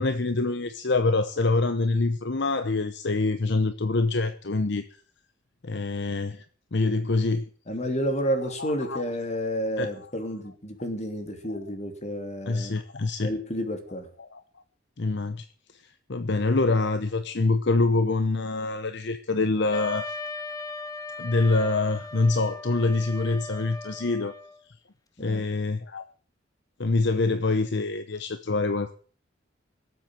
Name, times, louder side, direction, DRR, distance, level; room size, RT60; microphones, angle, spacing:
voice 1, 0.0-5.0 5.6-6.4 6.7-7.5 8.6-9.0 9.8-10.1 11.5-11.6 12.5-13.3 14.2-14.4 15.0-15.5 15.7-20.1 21.2-24.3 25.2-26.0 26.8-28.9, left 3 dB, 60° left, 11 dB, 0.8 m, -25 dB
voice 2, 7.7-12.8 13.2-14.1 25.2-25.5, equal, 35° left, 6 dB, 3.1 m, -30 dB
Wind instrument woodwind instrument, 19.7-24.6, left 3 dB, 20° left, 1.2 m, -38 dB
18.0 x 8.0 x 7.6 m, 0.43 s
head